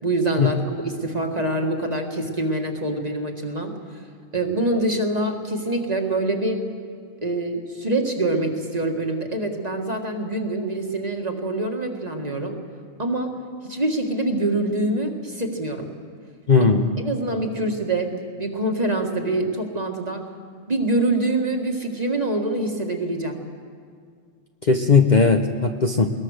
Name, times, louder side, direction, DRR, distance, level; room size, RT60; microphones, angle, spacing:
voice 1, 0.0-4.0 4.3-6.6 7.2-12.6 13.0-13.3 13.6-15.9 16.6-16.7 17.0-18.1 18.4-20.3 20.7-23.4, right 2 dB, 30° right, 2 dB, 1.9 m, -25 dB
voice 2, 16.5-16.9 24.6-26.1, left 4 dB, 40° left, 4 dB, 0.9 m, -17 dB
21.0 x 19.5 x 6.5 m, 2.1 s
omnidirectional pair, 1.3 m